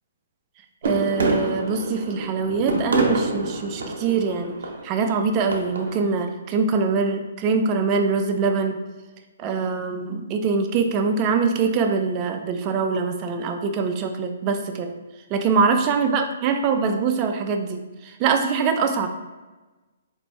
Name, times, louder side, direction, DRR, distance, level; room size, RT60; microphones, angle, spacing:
voice 1, 0.8-4.6 4.8-8.8 9.4-14.9 15.3-19.1, right 5 dB, 25° right, 5 dB, 0.4 m, -23 dB
sound 1, 0.8-6.2, right 2 dB, 70° right, 0.8 m, -27 dB
4.2 x 2.6 x 3.2 m, 1.2 s
hypercardioid pair, 150°, 0 cm